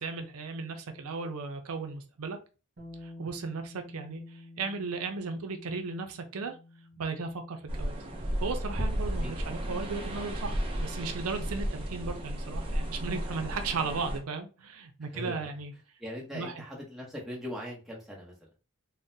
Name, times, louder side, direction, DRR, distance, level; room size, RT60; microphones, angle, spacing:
voice 1, 0.0-2.4 3.0-6.5 7.0-8.0 8.4-15.7 16.3-16.6, right 4 dB, 85° right, 0.5 m, -36 dB
Bass guitar, 2.8-9.0, left 2 dB, 50° right, 1.1 m, -50 dB
sound 1, 7.7-14.2, equal, 25° right, 0.5 m, -33 dB
voice 2, 9.1-9.7 15.1-15.4 16.0-18.3, equal, ahead, 0.8 m, -40 dB
3.7 x 2.1 x 2.6 m
head